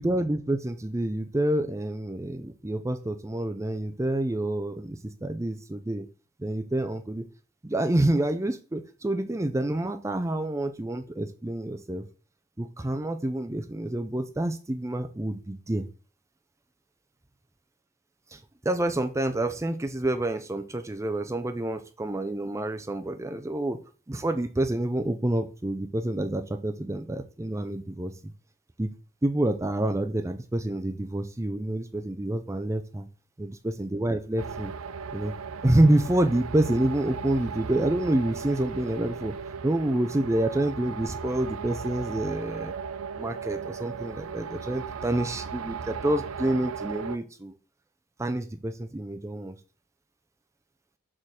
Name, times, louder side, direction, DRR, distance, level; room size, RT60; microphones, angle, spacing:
voice 1, 0.0-6.1 6.4-7.2 7.6-12.1 12.6-15.8 18.3-23.8 24.1-28.3 28.8-28.9 29.2-33.1 33.4-34.7 35.1-35.3 35.6-39.3 39.6-42.7 43.2-47.5 48.2-49.6, right 1 dB, 15° right, 8 dB, 0.5 m, -28 dB
sound 1, 34.4-47.2, right 6 dB, 80° right, 0.6 m, -37 dB
6.5 x 3.8 x 6.3 m, 0.37 s
head